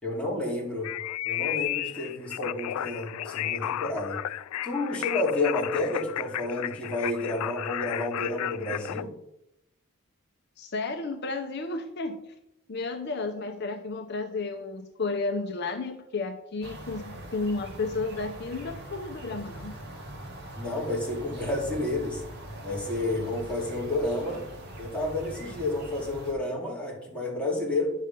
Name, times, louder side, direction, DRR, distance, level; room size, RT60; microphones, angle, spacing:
voice 1, 0.0-0.9 1.2-4.2 4.6-9.1 20.6-22.2 22.6-24.5 24.8-27.9, left 2 dB, 5° left, -4 dB, 2.6 m, -30 dB
sound 1, 0.8-9.0, left 13 dB, 85° left, 0.3 m, -33 dB
voice 2, 10.6-12.3 12.7-19.7, left 3 dB, 50° left, 6 dB, 0.7 m, -32 dB
sound 2, 16.6-26.3, right 1 dB, 50° right, 2.1 m, -42 dB
10.0 x 6.5 x 5.3 m, 0.81 s
head